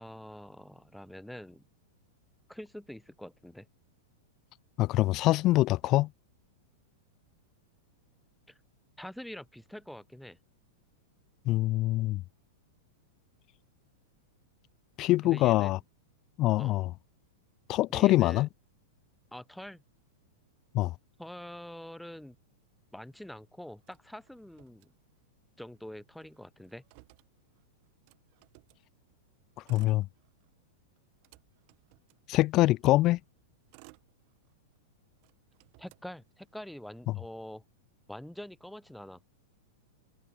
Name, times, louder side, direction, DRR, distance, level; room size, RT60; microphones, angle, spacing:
voice 1, 0.0-1.7 2.5-3.7 8.5-8.6 9.0-10.4 15.2-15.8 16.6-16.7 17.9-18.5 19.3-19.8 21.2-22.4 22.9-24.9 25.6-26.8 35.8-37.6 38.1-39.2, left 1 dB, ahead, 3.3 m, -45 dB
voice 2, 4.8-6.1 11.5-12.2 15.0-15.8 16.4-16.9 17.7-18.5 20.7-20.9 29.7-30.1 32.3-33.2, left 17 dB, 40° left, 0.4 m, -24 dB
Motor vehicle (road), 23.8-25.4 25.7-25.8 26.1-28.9 29.5-30.6 31.0-32.8 33.4-34.8 35.2-36.8, right 40 dB or more, 50° right, 3.1 m, -61 dB
hypercardioid pair, 105°, 0 cm